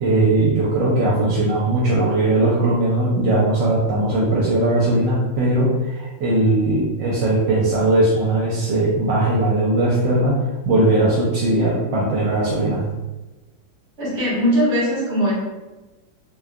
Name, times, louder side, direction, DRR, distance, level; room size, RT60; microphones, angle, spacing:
voice 1, 0.0-10.4 10.7-12.8, right 2 dB, 75° right, -5 dB, 1.2 m, -19 dB
voice 2, 14.0-15.3, equal, 40° right, -6 dB, 1.3 m, -20 dB
3.1 x 2.1 x 2.4 m, 1.1 s
omnidirectional pair, 2.1 m